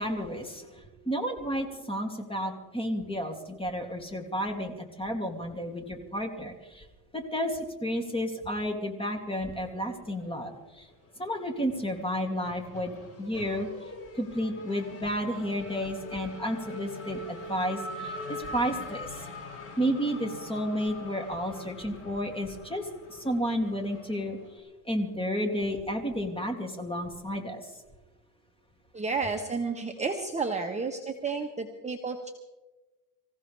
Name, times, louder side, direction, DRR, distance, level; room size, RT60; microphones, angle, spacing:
voice 1, 0.0-6.9 7.1-10.9 11.2-13.7 14.1-19.1 19.8-24.4 24.8-27.7, equal, 10° left, 3 dB, 2.7 m, -32 dB
Race car auto racing / Accelerating revving vroom, 9.6-10.6 10.9-24.6, left 1 dB, 30° left, 5.7 m, -43 dB
voice 2, 28.9-32.3, right 4 dB, 15° right, 2 dB, 1.3 m, -31 dB
25.0 x 15.5 x 3.4 m, 1.1 s
supercardioid pair, 110°, 45 cm